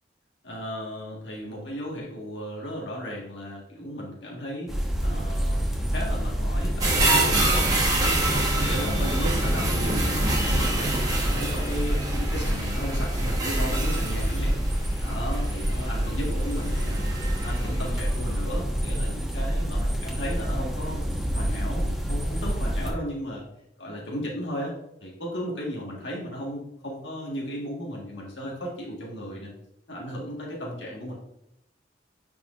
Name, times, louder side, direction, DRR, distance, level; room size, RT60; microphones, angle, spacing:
voice 1, 0.4-4.7 5.0-8.3 8.5-14.6 15.0-17.0 17.3-23.4 23.8-29.5 29.9-31.1, equal, 90° left, -3 dB, 1.7 m, -35 dB
sound 1, 4.7-22.9, equal, ahead, 1.1 m, -27 dB
sound 2, 6.8-18.0 18.5-18.6, right 2 dB, 20° right, 1.3 m, -27 dB
9.3 x 4.8 x 2.5 m, 0.80 s
head